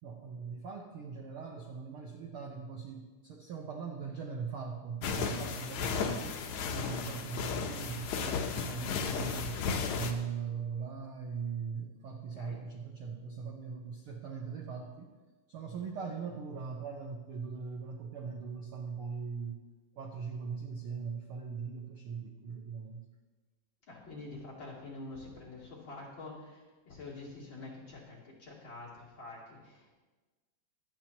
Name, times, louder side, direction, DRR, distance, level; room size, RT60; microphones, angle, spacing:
voice 1, 0.0-6.4 6.7-9.6 9.9-15.1 15.5-19.6 19.9-23.0, right 6 dB, 70° right, 1 dB, 1.3 m, -40 dB
sound 1, 5.0-10.1, left 5 dB, 70° left, 2.1 m, -34 dB
voice 2, 6.6-7.0 12.3-12.6 23.9-30.0, left 2 dB, 35° left, -6 dB, 3.5 m, -47 dB
24.0 x 8.8 x 3.0 m, 1.2 s
omnidirectional pair, 3.9 m